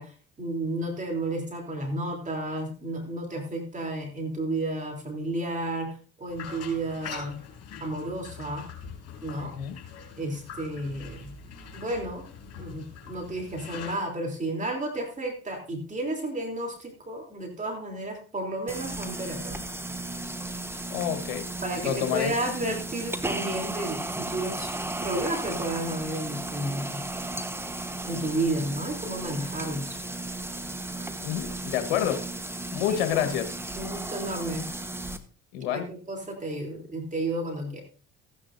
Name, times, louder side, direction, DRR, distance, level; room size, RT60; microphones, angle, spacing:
voice 1, 0.0-7.4 7.8-8.7 9.2-9.5 10.2-11.3 11.7-12.3 12.6-19.6 21.6-24.7 25.0-27.0 28.0-30.0 32.8-33.3 33.8-34.7 35.7-37.8, right 1 dB, 25° right, 2 dB, 3.4 m, -32 dB
sound 1, 6.3-13.9, left 6 dB, 55° left, 5.3 m, -43 dB
voice 2, 9.4-9.8 20.9-21.5 21.8-22.3 31.2-32.2 32.7-33.5 35.5-35.8, left 10 dB, 90° left, 8 dB, 1.4 m, -28 dB
sound 2, 18.7-35.2, right 2 dB, 10° right, 1.2 m, -35 dB
15.5 x 9.7 x 2.6 m, 0.39 s
supercardioid pair, 75°, 30 cm